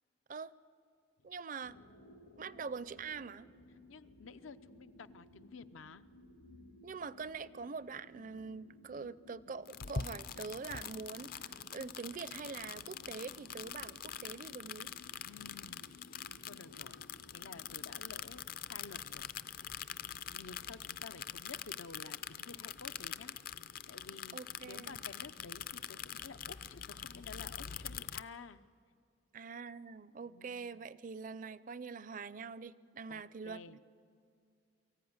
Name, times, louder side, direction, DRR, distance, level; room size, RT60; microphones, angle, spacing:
voice 1, 1.2-1.8 2.4-3.5 6.8-14.9 24.3-25.0 29.3-33.8, right 5 dB, 40° right, 17 dB, 0.4 m, -44 dB
sound 1, 1.6-19.8, left 1 dB, 60° left, 1.0 m, -60 dB
voice 2, 3.9-6.0 15.3-15.9 16.4-17.0 17.3-19.7 20.3-23.3 23.9-24.4 24.6-28.6 30.2-30.9 33.1-33.8, left 4 dB, 80° left, 11 dB, 0.7 m, -52 dB
sound 2, 9.6-28.2, left 8 dB, 45° left, 0.5 m, -44 dB
24.0 x 14.5 x 9.5 m, 2.4 s
head